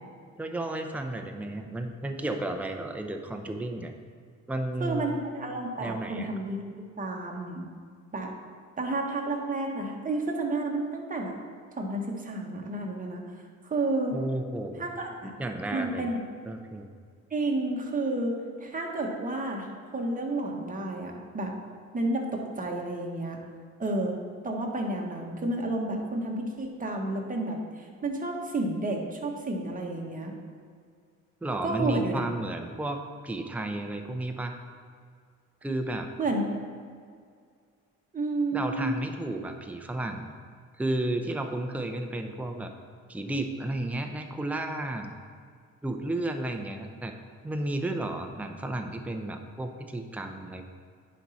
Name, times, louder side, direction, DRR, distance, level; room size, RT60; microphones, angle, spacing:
voice 1, 0.4-3.9 4.5-5.2 5.8-6.3 14.1-14.9 15.4-16.1 16.5-16.9 31.4-34.5 35.6-36.1 38.5-40.3 40.8-42.7 43.1-45.1 45.8-47.1 47.4-50.7, right 1 dB, 5° right, 4 dB, 0.6 m, -33 dB
voice 2, 4.8-7.7 8.1-8.3 8.8-11.3 11.8-13.2 13.6-14.2 14.8-15.3 15.7-16.2 17.3-18.3 18.6-21.5 21.9-23.4 23.8-24.2 24.4-30.3 31.6-32.2 36.2-36.4 38.1-38.9, right 2 dB, 25° right, 0 dB, 1.4 m, -31 dB
10.0 x 4.3 x 4.1 m, 2.1 s
cardioid pair, 90°, 30 cm